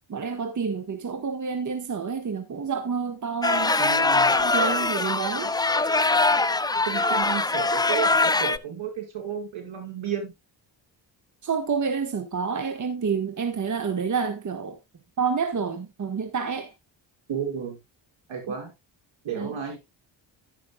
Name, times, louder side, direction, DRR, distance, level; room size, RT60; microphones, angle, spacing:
voice 1, 0.1-3.8 4.3-5.5 11.4-14.8 15.2-16.7 19.3-19.5, right 5 dB, 40° right, 1.4 m, -28 dB
sound 1, 3.4-8.6, left 3 dB, 10° left, 0.4 m, -22 dB
voice 2, 3.8-4.3 6.9-10.3 17.3-17.8 18.3-18.7 19.2-19.8, right 7 dB, 85° right, 5.3 m, -32 dB
11.5 x 9.9 x 2.3 m
cardioid pair, 110°, 46 cm